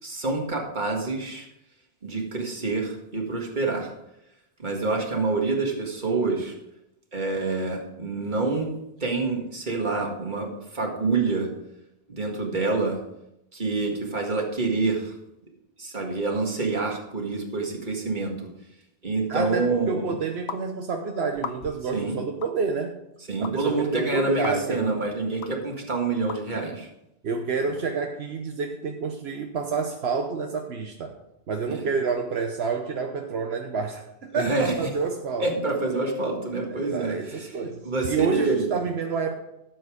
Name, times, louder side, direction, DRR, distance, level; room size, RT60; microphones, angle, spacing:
voice 1, 0.0-1.5 2.0-3.9 4.6-6.5 7.1-8.7 9.0-11.5 12.1-13.0 13.5-15.1 15.8-18.5 19.0-20.1 21.9-22.2 23.3-26.9 27.6-27.7 31.7-31.8 34.3-34.7 35.4-37.6 37.8-38.8, right 3 dB, 45° right, 1 dB, 2.1 m, -27 dB
voice 2, 19.3-23.0 23.4-24.9 27.2-31.1 31.5-35.5 36.7-39.4, right 5 dB, 80° right, 4 dB, 1.1 m, -29 dB
sound 1, 20.5-20.6 21.3-21.9 22.4-22.6 23.4-23.5 24.4-24.6 25.4-25.5 26.3-26.4, left 7 dB, 85° left, 1.0 m, -36 dB
12.5 x 7.5 x 4.9 m, 0.86 s
omnidirectional pair, 1.1 m